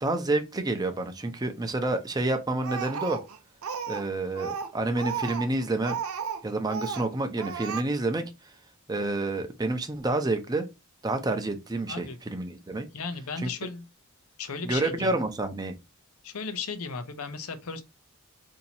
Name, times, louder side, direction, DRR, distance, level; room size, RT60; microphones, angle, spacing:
voice 1, 0.0-3.2 3.9-6.0 6.4-8.3 8.9-10.7 11.0-12.9 13.4-13.5 14.6-15.7, right 2 dB, 20° right, 0.6 m, -29 dB
Speech, 2.6-4.1 4.4-6.4 6.7-7.1 7.4-7.8, right 6 dB, 70° right, 0.5 m, -34 dB
voice 2, 12.9-13.8 14.4-15.1 16.2-17.8, left 4 dB, 75° left, 0.6 m, -35 dB
2.8 x 2.7 x 4.2 m
head